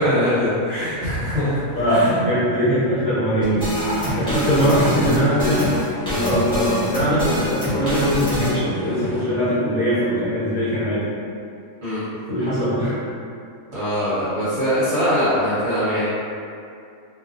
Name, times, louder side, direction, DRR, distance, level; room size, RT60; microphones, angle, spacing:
voice 1, 0.0-2.2 11.8-12.0 13.7-16.1, equal, 50° right, -13 dB, 1.0 m, -22 dB
voice 2, 1.7-5.6 6.0-11.0 12.3-13.0, equal, 70° left, -13 dB, 1.2 m, -21 dB
sound 1, 3.4-8.5, equal, 5° left, 0.5 m, -24 dB
sound 2, 3.6-9.2, right 1 dB, 85° right, 1.1 m, -38 dB
2.5 x 2.4 x 2.4 m, 2.4 s
omnidirectional pair, 1.5 m